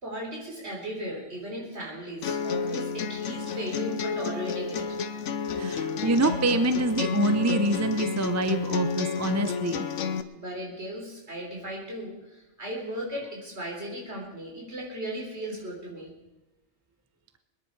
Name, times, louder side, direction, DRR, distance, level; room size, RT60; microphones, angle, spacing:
voice 1, 0.0-4.8 10.3-12.1 12.6-16.1, equal, 60° right, -2 dB, 4.3 m, -36 dB
sound 1, 2.2-10.2, left 5 dB, 85° left, 1.1 m, -30 dB
voice 2, 5.6-9.9, right 2 dB, 15° right, 9 dB, 0.6 m, -26 dB
23.5 x 10.5 x 4.8 m, 1.0 s
omnidirectional pair, 1.2 m